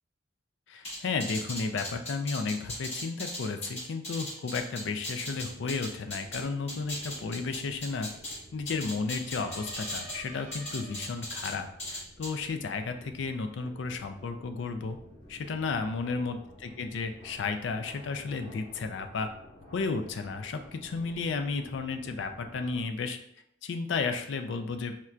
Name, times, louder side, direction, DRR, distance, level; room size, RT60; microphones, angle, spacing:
voice 1, 0.7-8.1 8.5-15.0 15.3-19.3 19.7-23.2 23.6-25.0, left 4 dB, 65° left, 7 dB, 0.4 m, -33 dB
sound 1, 0.8-6.4 6.7-8.4 8.7-10.2 10.5-11.5 11.8-12.3, left 1 dB, 35° left, 1.4 m, -37 dB
sound 2, 5.2-22.8, equal, 10° left, 1.3 m, -53 dB
sound 3, 9.2-11.6, right 2 dB, 35° right, 0.5 m, -49 dB
4.2 x 2.2 x 2.4 m, 0.72 s
head